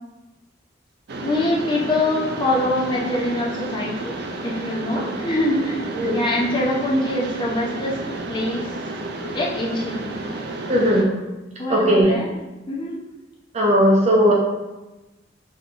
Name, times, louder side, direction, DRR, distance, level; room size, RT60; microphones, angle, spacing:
Mechanisms, 1.1-11.0, right 2 dB, 60° right, 0.5 m, -31 dB
voice 1, 1.2-4.1 4.4-5.8 6.1-8.0 8.3-8.7 9.3-10.0 11.6-12.3 12.7-13.0, left 1 dB, 25° left, -4 dB, 0.7 m, -23 dB
voice 2, 10.7-11.3 11.7-12.1 13.5-14.3, equal, 35° right, -3 dB, 1.0 m, -18 dB
5.4 x 3.2 x 2.5 m, 1.0 s
head